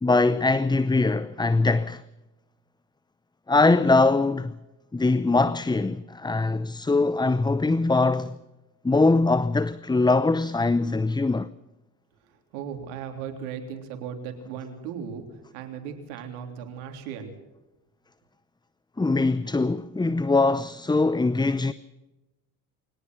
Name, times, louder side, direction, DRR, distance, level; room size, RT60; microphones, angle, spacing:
voice 1, 0.0-2.0 3.5-4.6 4.9-8.4 8.8-11.5 19.0-21.7, left 3 dB, 10° left, 0.7 m, -22 dB
voice 2, 12.5-15.2 15.5-17.4, right 7 dB, 80° right, 3.5 m, -36 dB
23.0 x 18.5 x 6.2 m
hypercardioid pair, 60°, 44 cm